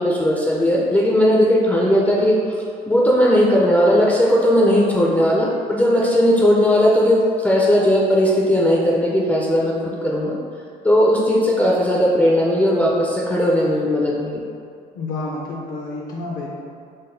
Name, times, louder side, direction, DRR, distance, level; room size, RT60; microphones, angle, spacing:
voice 1, 0.0-2.6 2.9-10.4 10.8-14.4, equal, 10° left, -4 dB, 0.4 m, -17 dB
voice 2, 14.9-16.5, left 2 dB, 60° left, -2 dB, 0.5 m, -29 dB
3.8 x 2.1 x 3.8 m, 2.3 s
cardioid pair, 110°, 17 cm